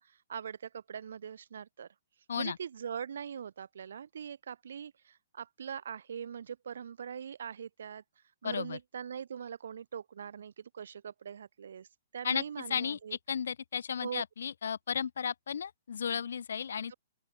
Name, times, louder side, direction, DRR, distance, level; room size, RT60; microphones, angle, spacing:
voice 1, 0.0-1.9 2.4-8.0 8.4-11.9 12.1-13.2 14.0-14.2 16.9-17.0, right 7 dB, 70° right, 4.4 m, -42 dB
voice 2, 8.4-8.8 12.2-12.4 12.7-16.9, left 7 dB, 80° left, 2.6 m, -34 dB
open air
hypercardioid pair, 175°, 0 cm